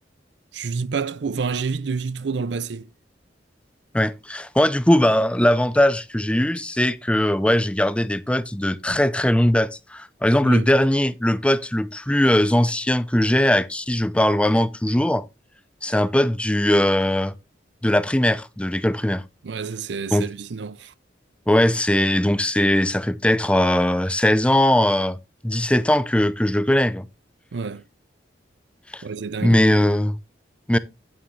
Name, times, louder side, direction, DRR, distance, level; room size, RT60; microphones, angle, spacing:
voice 1, 0.5-2.9 10.4-10.7 19.4-20.9 27.5-27.8 29.0-29.6, right 5 dB, 70° right, 0.5 m, -28 dB
voice 2, 3.9-15.3 15.8-17.3 17.8-19.2 20.1-20.2 21.5-25.2 25.4-27.1 28.9-29.0 29.4-30.2 30.7-30.8, left 1 dB, 5° left, 0.6 m, -20 dB
9.4 x 9.1 x 3.2 m
head